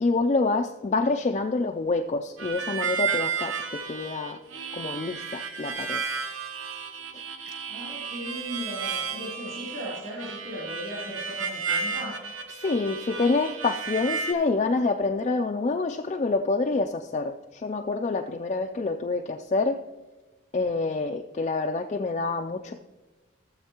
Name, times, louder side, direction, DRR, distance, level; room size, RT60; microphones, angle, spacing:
voice 1, 0.0-4.4 4.7-6.0 7.1-7.2 12.5-19.8 20.5-22.7, left 3 dB, 35° left, 3 dB, 0.3 m, -27 dB
Harmonica, 2.4-14.3, right 6 dB, 80° right, 0.9 m, -33 dB
voice 2, 7.7-12.2, equal, 45° right, -6 dB, 3.4 m, -37 dB
16.0 x 7.3 x 2.9 m, 1.2 s
head